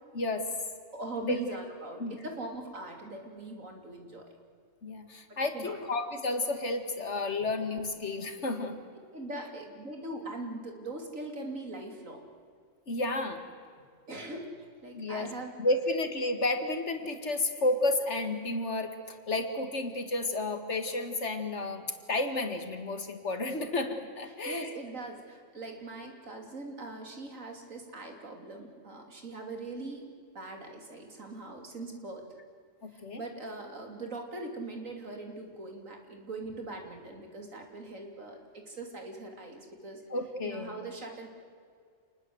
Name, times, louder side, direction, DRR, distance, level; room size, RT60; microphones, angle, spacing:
voice 1, 0.1-0.5 1.2-1.4 2.0-2.2 4.8-8.8 12.9-13.4 14.9-15.3 15.6-24.7 32.8-33.2 40.1-40.7, left 2 dB, 60° left, 7 dB, 2.2 m, -31 dB
voice 2, 0.9-4.3 5.5-5.8 9.1-12.2 13.8-15.5 24.3-32.3 32.9-40.0 40.4-41.3, right 2 dB, 85° right, 3 dB, 3.5 m, -41 dB
28.0 x 20.5 x 8.0 m, 2.1 s
omnidirectional pair, 1.3 m